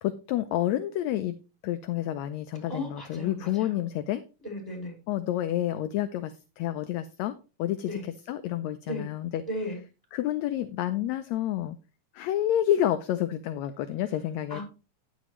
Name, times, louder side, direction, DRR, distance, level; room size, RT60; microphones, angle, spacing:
voice 1, 0.0-1.4 1.6-4.2 5.1-7.3 7.6-9.4 10.1-11.8 12.1-14.6, left 12 dB, 75° left, 10 dB, 1.8 m, -29 dB
voice 2, 2.7-3.7 4.4-4.9 7.8-8.1 8.8-9.1 9.5-9.8 14.5-14.6, left 1 dB, 5° left, -1 dB, 5.2 m, -35 dB
10.0 x 9.4 x 3.0 m, 0.30 s
omnidirectional pair, 3.4 m